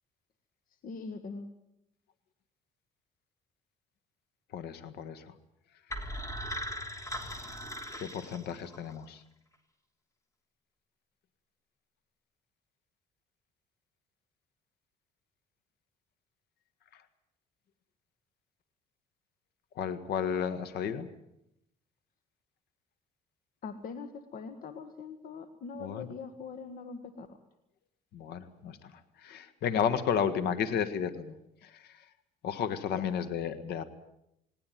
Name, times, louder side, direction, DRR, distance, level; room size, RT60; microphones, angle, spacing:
voice 1, 0.8-1.5 23.6-27.4 32.9-33.0, left 5 dB, 55° left, 10 dB, 1.6 m, -42 dB
voice 2, 4.5-5.3 8.0-9.2 16.9-17.0 19.8-21.1 25.8-26.1 28.1-31.4 31.6-32.1 32.4-33.8, left 8 dB, 75° left, 12 dB, 1.7 m, -33 dB
sound 1, 5.9-8.9, equal, 20° left, 3.1 m, -39 dB
20.0 x 18.0 x 9.3 m, 0.81 s
cardioid pair, 110°, 17 cm